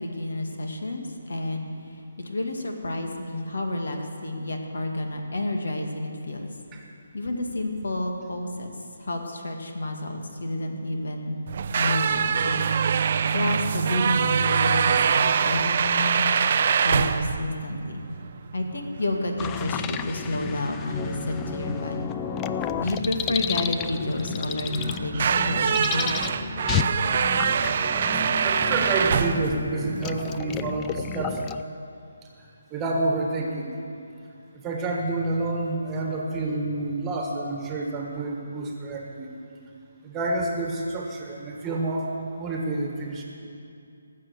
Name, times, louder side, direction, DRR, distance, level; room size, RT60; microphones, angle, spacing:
voice 1, 0.0-1.7 2.2-6.5 7.1-8.7 9.0-11.4 11.7-12.7 13.3-16.2 16.8-18.0 18.5-22.1 22.8-26.1, left 1 dB, 80° left, 3 dB, 2.1 m, -30 dB
sound 1, 11.5-30.4, right 7 dB, 40° right, 0.5 m, -25 dB
sound 2, 19.4-31.6, left 8 dB, 15° left, 0.3 m, -32 dB
voice 2, 27.9-31.4 32.7-33.7 34.5-39.3 40.0-43.2, right 2 dB, 15° right, 0 dB, 1.5 m, -28 dB
18.5 x 7.6 x 8.0 m, 2.6 s
hypercardioid pair, 165°, 0 cm